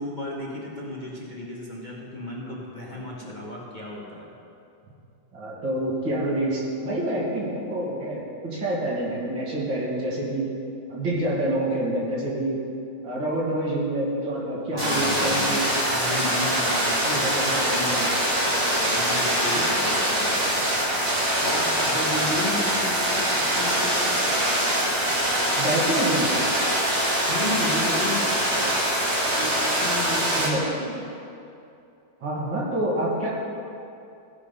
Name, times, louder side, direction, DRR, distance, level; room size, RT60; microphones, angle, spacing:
voice 1, 0.0-4.3 14.7-18.0 18.8-20.6 21.4-24.2 27.3-28.9 29.3-31.0, left 1 dB, 30° left, -4 dB, 1.2 m, -33 dB
voice 2, 2.9-3.4 5.3-10.5 10.9-12.6 13.0-15.6 16.9-18.1 25.6-26.4 30.4-30.6 32.2-33.3, right 1 dB, 80° right, -5 dB, 3.0 m, -27 dB
sound 1, 14.8-30.5, equal, 45° right, 2.7 m, -23 dB
16.0 x 5.7 x 5.3 m, 2.6 s
omnidirectional pair, 2.0 m